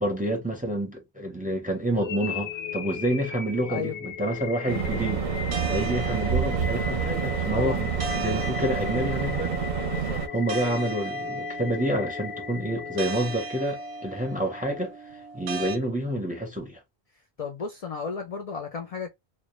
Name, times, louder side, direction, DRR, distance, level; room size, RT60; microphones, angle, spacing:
voice 1, 0.0-5.3 5.7-9.6 10.3-15.0 15.3-16.8, right 1 dB, 10° right, 0.5 m, -28 dB
sound 1, 2.0-14.0, left 8 dB, 90° left, 0.8 m, -37 dB
sound 2, 4.7-10.3, right 7 dB, 55° right, 0.6 m, -28 dB
sound 3, 5.5-15.8, right 2 dB, 90° right, 0.8 m, -37 dB
voice 2, 17.4-19.1, left 5 dB, 55° left, 0.4 m, -33 dB
2.1 x 2.1 x 2.9 m
omnidirectional pair, 1.1 m